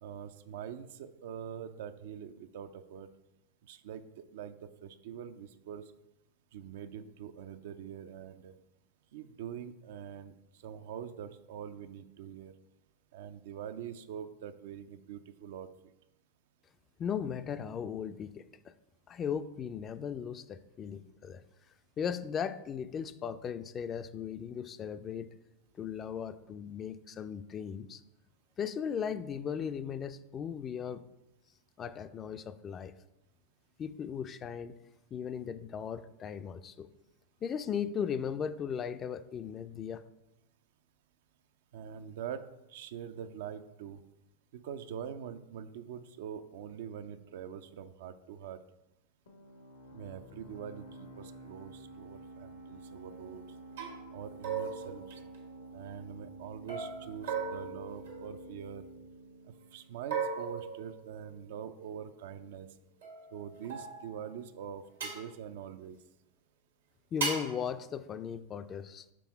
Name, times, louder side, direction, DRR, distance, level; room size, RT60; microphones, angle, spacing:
voice 1, 0.0-3.1 3.6-5.8 6.5-8.5 9.1-10.3 10.6-12.5 13.1-15.7 41.7-44.0 44.5-48.6 49.9-53.5 54.1-55.2 55.7-58.9 59.7-62.7 63.3-66.0, right 8 dB, 70° right, 10 dB, 0.4 m, -44 dB
voice 2, 17.0-18.7 19.1-21.4 22.0-25.3 25.8-28.0 28.6-31.0 31.8-32.9 33.8-34.8 35.1-36.9 37.4-40.0 67.1-69.1, left 7 dB, 30° left, 12 dB, 0.3 m, -37 dB
sound 1, 49.3-60.6, right 2 dB, 90° left, 1.1 m, -50 dB
sound 2, 53.1-53.3 53.8-54.0 54.4-55.8 56.7-58.9 60.1-61.5 63.0-64.3 65.0-65.3 67.2-67.6, right 5 dB, 85° right, 1.5 m, -38 dB
6.1 x 3.4 x 4.6 m, 0.93 s
hypercardioid pair, 100°, 0 cm